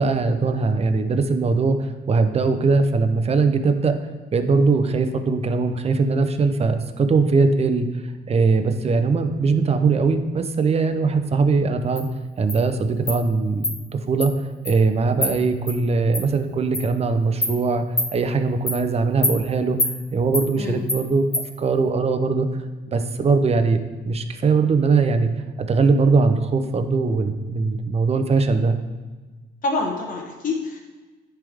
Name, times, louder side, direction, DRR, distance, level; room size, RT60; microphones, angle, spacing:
voice 1, 0.0-4.0 4.3-7.9 8.3-12.1 12.4-17.8 18.1-21.2 21.6-22.5 22.9-23.8 24.0-25.3 25.6-28.7, right 4 dB, 30° right, 8 dB, 0.6 m, -20 dB
Insect, 12.0-12.1 12.5-12.6 13.1-13.2 13.6-13.7 14.2-14.3 14.6-14.8 15.2-15.3 15.7-15.8 16.1-16.2 16.7-16.9 17.4-17.5 18.0-18.1 18.7-18.8 19.2-19.4 19.8-19.9 20.3-20.5 20.9-21.0 21.3-21.4, left 1 dB, 20° left, 2.0 m, -24 dB
voice 2, 29.6-30.8, left 3 dB, 45° left, -1 dB, 1.0 m, -26 dB
10.0 x 3.4 x 3.5 m, 1.3 s
cardioid pair, 90°, 20 cm